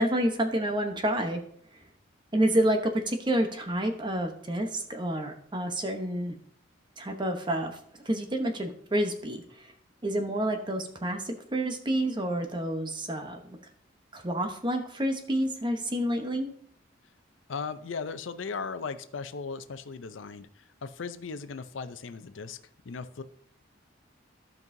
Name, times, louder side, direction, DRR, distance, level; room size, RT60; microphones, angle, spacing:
voice 1, 0.0-1.4 2.3-6.4 7.0-7.8 8.0-9.7 10.0-13.6 14.1-16.5, right 1 dB, 25° right, 5 dB, 0.9 m, -29 dB
voice 2, 17.5-22.6 22.9-23.2, left 5 dB, 80° left, 12 dB, 0.5 m, -37 dB
15.0 x 5.4 x 2.7 m, 0.64 s
head